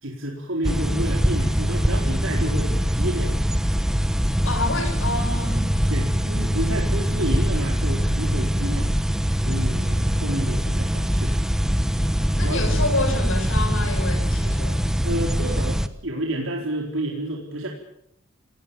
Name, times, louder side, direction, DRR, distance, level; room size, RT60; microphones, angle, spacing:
voice 1, 0.0-3.4 5.9-8.9 9.4-11.4 12.4-12.8 15.0-17.7, right 1 dB, 75° right, 0 dB, 4.3 m, -30 dB
sound 1, 0.6-15.9, equal, 5° right, 1.1 m, -23 dB
voice 2, 4.4-5.7 12.2-14.8, left 2 dB, 80° left, 6 dB, 6.7 m, -28 dB
28.5 x 19.0 x 7.1 m, 0.73 s
head